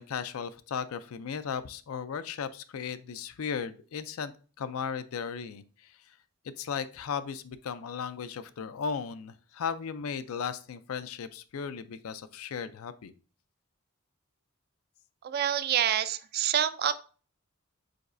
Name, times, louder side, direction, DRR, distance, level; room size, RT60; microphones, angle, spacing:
voice 1, 0.0-4.3 4.6-6.2 6.6-13.1, left 6 dB, 85° left, 13 dB, 0.4 m, -36 dB
voice 2, 15.2-16.9, right 9 dB, 45° right, 13 dB, 0.3 m, -27 dB
5.1 x 4.0 x 2.5 m, 0.38 s
head